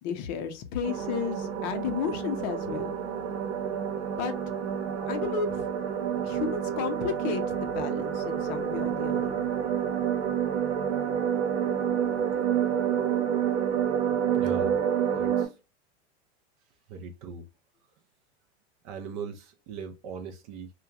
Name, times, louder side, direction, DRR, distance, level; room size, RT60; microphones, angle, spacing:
voice 1, 0.0-2.9 4.2-4.3 5.1-5.7 6.2-9.4, left 7 dB, 40° left, 0.5 m, -33 dB
sound 1, 0.8-15.5, right 8 dB, 90° right, 0.8 m, -28 dB
voice 2, 14.3-14.8 15.1-15.6 16.9-17.5 18.8-20.7, right 5 dB, 35° right, 0.4 m, -39 dB
2.8 x 2.2 x 2.3 m
supercardioid pair, 155°, 33 cm